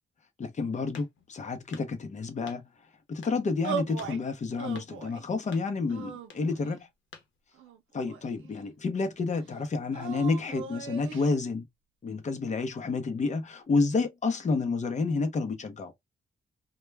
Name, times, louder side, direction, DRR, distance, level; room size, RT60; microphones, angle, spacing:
voice 1, 0.4-2.6 3.1-6.9 7.9-11.7 12.0-15.9, left 4 dB, 35° left, 0.7 m, -30 dB
sound 1, 0.9-1.4 1.7-1.9 2.5-2.6 3.2-3.4 4.0-4.1 4.7-4.9 5.5-5.7 6.3-6.4 7.1-7.3, left 6 dB, 70° left, 0.8 m, -49 dB
sound 2, 3.6-4.2 4.6-5.3 5.9-6.8 7.5-8.5 9.9-11.3, right 7 dB, 85° right, 0.6 m, -38 dB
2.2 x 2.2 x 3.1 m
cardioid pair, 110°, 20 cm